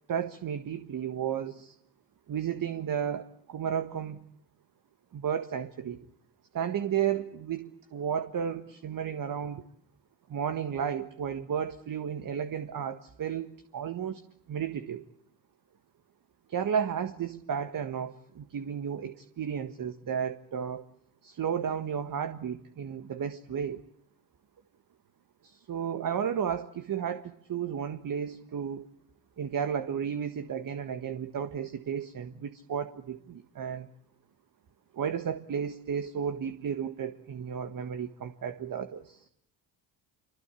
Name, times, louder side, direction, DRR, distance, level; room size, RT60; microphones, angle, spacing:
voice 1, 0.1-1.7 2.3-4.2 5.1-6.0 6.5-9.6 10.3-14.2 14.5-15.0 16.5-20.8 21.2-23.8 25.4-28.9 29.4-33.9 34.9-39.3, right 8 dB, 45° right, 9 dB, 1.6 m, -33 dB
26.5 x 24.5 x 8.4 m, 0.71 s
supercardioid pair, 70°, 47 cm